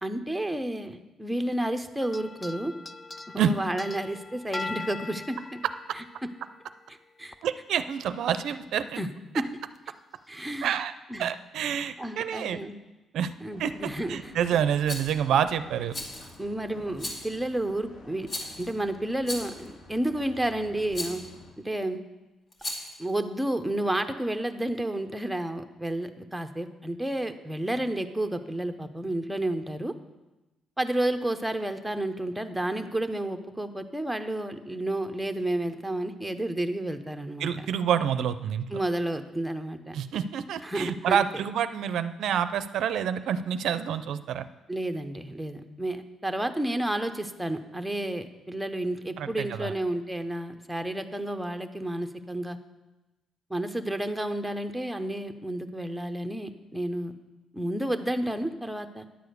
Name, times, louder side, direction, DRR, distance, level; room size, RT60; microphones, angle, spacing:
voice 1, 0.0-2.7 3.3-5.4 6.2-6.3 7.2-7.4 9.0-9.1 9.3-9.5 10.3-10.8 11.1-11.3 12.0-12.8 13.4-14.2 16.4-18.3 18.6-21.2 21.6-22.0 23.0-29.9 30.8-37.7 38.7-40.0 40.6-41.3 44.7-52.6 53.5-57.1 57.5-59.1, right 1 dB, 5° right, 7 dB, 0.8 m, -31 dB
sound 1, 2.0-6.8 7.3-7.4 9.0-9.1 9.7-9.8 10.5-10.8, left 3 dB, 25° left, 0.4 m, -41 dB
voice 2, 7.4-9.0 10.6-10.9 11.2-12.6 13.1-13.3 13.6-15.9 37.4-38.7 39.9-44.5 49.2-49.7, right 8 dB, 75° right, 12 dB, 0.4 m, -28 dB
sound 2, 13.5-21.5, left 1 dB, 65° left, 2.8 m, -50 dB
Rattle, 14.9-15.1 15.9-16.4 17.0-17.4 18.3-18.7 19.2-19.7 20.9-21.3 22.5-23.0, left 1 dB, 50° left, 2.2 m, -36 dB
10.0 x 4.9 x 7.9 m, 1.1 s
cardioid pair, 90°, 0 cm